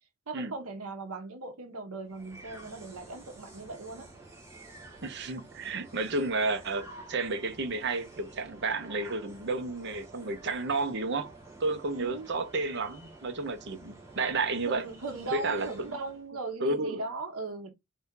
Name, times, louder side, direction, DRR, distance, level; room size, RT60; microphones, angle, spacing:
voice 1, 0.3-4.1 11.9-12.3 14.6-17.7, right 3 dB, 85° right, 0.9 m, -38 dB
sound 1, 2.0-16.3, right 2 dB, 15° right, 1.4 m, -50 dB
voice 2, 5.0-11.3 11.6-14.8 15.3-15.7 16.6-17.0, right 3 dB, 55° right, 0.8 m, -31 dB
4.3 x 2.8 x 3.6 m
head